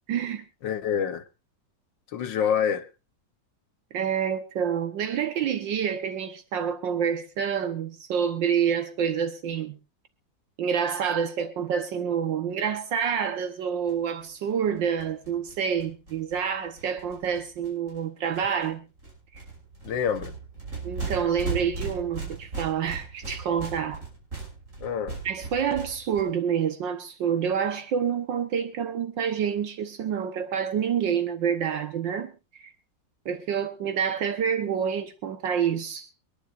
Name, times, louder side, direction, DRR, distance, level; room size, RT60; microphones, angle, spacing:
voice 1, 0.1-0.4 3.9-9.8 10.6-18.9 20.8-24.0 25.2-32.3 32.6-32.7 33.3-36.1, right 7 dB, 80° right, 1.8 m, -27 dB
voice 2, 0.6-1.2 2.1-2.9 19.8-20.3 24.8-25.2, left 8 dB, 80° left, 1.7 m, -26 dB
sound 1, 13.9-14.0 14.2-14.3 14.5-14.6 14.8-18.0 18.3-18.7 19.0-26.2, right 4 dB, 45° right, 6.2 m, -37 dB
24.5 x 11.0 x 2.5 m
omnidirectional pair, 2.0 m